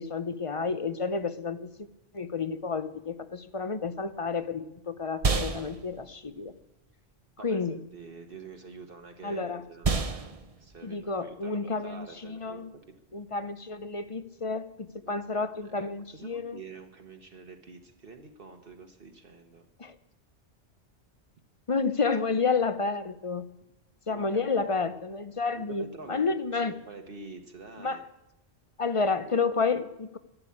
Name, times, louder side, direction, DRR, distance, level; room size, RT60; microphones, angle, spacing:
voice 1, 0.0-1.9 2.1-6.5 7.4-7.8 9.2-9.6 10.8-12.7 13.1-16.6 19.8-20.0 21.7-23.5 24.1-26.7 27.8-28.0 28.8-30.2, left 4 dB, 35° left, 13 dB, 0.6 m, -30 dB
sound 1, 3.9-13.5, right 4 dB, 35° right, 0.9 m, -35 dB
voice 2, 7.9-10.3 10.6-12.7 15.0-15.5 15.8-15.9 16.1-19.7 24.1-24.2 24.6-24.7 25.5-26.2 26.5-28.0, right 4 dB, 55° right, 4 dB, 1.3 m, -47 dB
12.0 x 12.0 x 8.5 m, 0.95 s
omnidirectional pair, 1.1 m